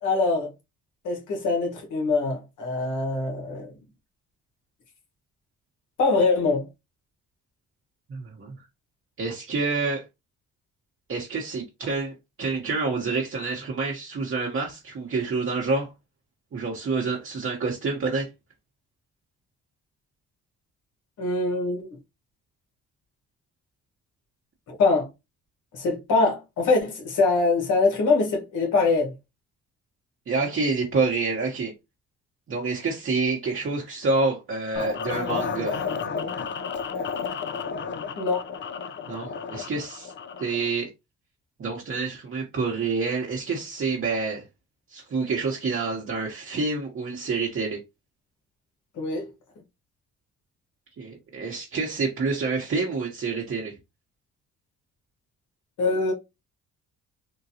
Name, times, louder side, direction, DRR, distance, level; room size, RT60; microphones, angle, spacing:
voice 1, 0.0-0.5 1.0-3.7 6.0-6.7 21.2-21.9 24.7-25.1 25.7-29.1 38.1-38.4 49.0-49.3 55.8-56.1, left 3 dB, 80° left, 1.5 m, -23 dB
voice 2, 8.1-8.6 9.2-10.0 11.1-15.9 16.5-18.3 30.3-31.7 32.5-35.8 39.0-40.1 40.4-40.9 41.6-44.4 44.9-47.8 51.0-53.7, right 4 dB, 45° right, 1.0 m, -28 dB
sound 1, 34.8-40.7, left 5 dB, 40° left, 0.5 m, -32 dB
3.8 x 2.3 x 2.7 m
cardioid pair, 90°, 30 cm